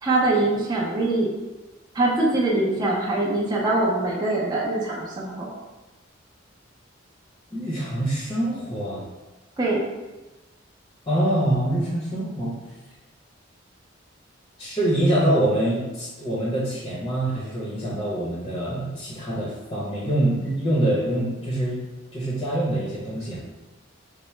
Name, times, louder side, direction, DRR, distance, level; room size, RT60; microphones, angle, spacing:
voice 1, 0.0-1.3 1.9-5.5 9.6-9.9, right 2 dB, 20° right, -5 dB, 0.6 m, -23 dB
voice 2, 7.5-9.0 11.1-12.5 14.6-21.8 22.1-23.4, right 1 dB, 25° left, -6 dB, 0.7 m, -25 dB
4.5 x 2.1 x 3.1 m, 1.1 s
head